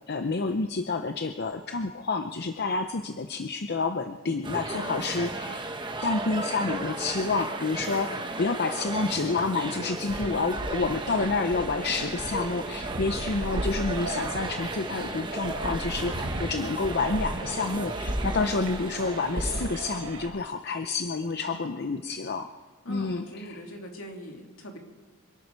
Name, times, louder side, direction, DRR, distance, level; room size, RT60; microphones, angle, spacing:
voice 1, 0.1-5.6 6.0-22.5 22.9-23.6, left 3 dB, 50° left, 8 dB, 0.7 m, -29 dB
sound 1, 4.4-20.0, right 2 dB, 20° right, 1.1 m, -35 dB
voice 2, 4.7-5.2 10.2-10.6 21.4-21.9 22.8-24.8, equal, 70° left, 1 dB, 2.8 m, -42 dB
sound 2, 10.1-20.3, right 1 dB, 85° right, 3.3 m, -35 dB
25.5 x 12.0 x 4.7 m, 1.3 s
head